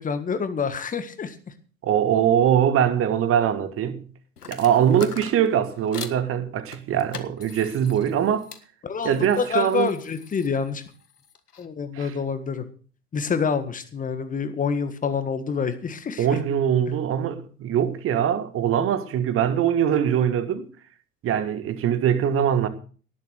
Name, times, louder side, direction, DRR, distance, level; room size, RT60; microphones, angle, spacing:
voice 1, 0.0-1.3 8.8-10.8 11.6-12.6 13.1-16.3, left 6 dB, 15° left, 1.6 m, -27 dB
voice 2, 1.8-4.0 4.5-8.5 9.0-9.9 11.9-12.1 16.2-20.7 21.2-22.7, right 9 dB, 30° right, 1.7 m, -22 dB
sound 1, 4.4-6.2 6.7-8.6 9.0-11.7, left 6 dB, 75° left, 1.6 m, -42 dB
18.0 x 7.6 x 6.5 m
figure-of-eight pair, 85°, 46 cm